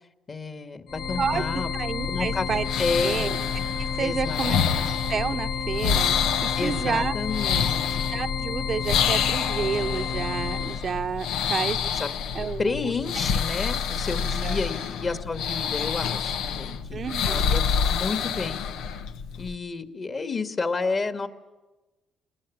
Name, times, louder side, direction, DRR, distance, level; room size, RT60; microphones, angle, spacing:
voice 1, 0.3-1.7 2.1-2.5 2.8-3.3 4.0-4.4 6.6-8.1 11.9-12.1 12.6-17.0 17.3-18.6 19.4-21.3, left 4 dB, 40° left, 8 dB, 2.3 m, -30 dB
sound 1, 0.9-10.8, left 6 dB, 70° left, 2.2 m, -30 dB
voice 2, 1.8-2.7 3.0-3.4 3.8-6.2 6.4-7.1 8.1-11.8 12.3-12.9 14.4-14.6 16.9-17.4, right 6 dB, 50° right, 8 dB, 0.9 m, -30 dB
sound 2, 2.0-19.5, left 7 dB, 90° left, 1.3 m, -28 dB
28.0 x 21.0 x 8.9 m, 1.1 s
cardioid pair, 90°, 0 cm